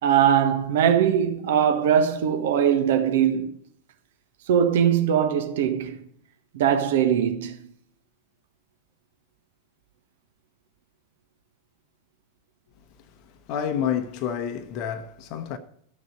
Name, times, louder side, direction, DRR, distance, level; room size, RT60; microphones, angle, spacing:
voice 1, 0.0-3.5 4.5-6.0 6.5-7.6, right 8 dB, 55° right, 1.2 m, -21 dB
voice 2, 13.5-15.6, left 8 dB, 45° left, 0.9 m, -28 dB
13.0 x 6.5 x 6.4 m
figure-of-eight pair, 90°, 0 cm